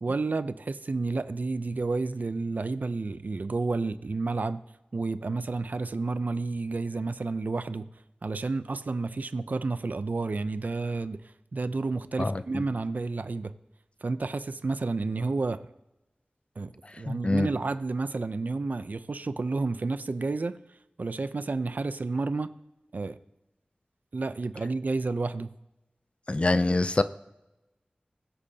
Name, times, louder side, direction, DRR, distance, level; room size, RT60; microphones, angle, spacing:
voice 1, 0.0-4.6 4.9-7.8 8.2-11.2 11.5-13.5 14.0-15.7 16.6-20.6 21.0-22.5 22.9-23.2 24.1-25.5, right 3 dB, 70° right, 0.5 m, -30 dB
voice 2, 12.2-12.6 17.1-17.5 26.3-27.0, left 2 dB, 40° left, 0.5 m, -25 dB
22.0 x 8.4 x 2.8 m
wide cardioid pair, 65°, 3 cm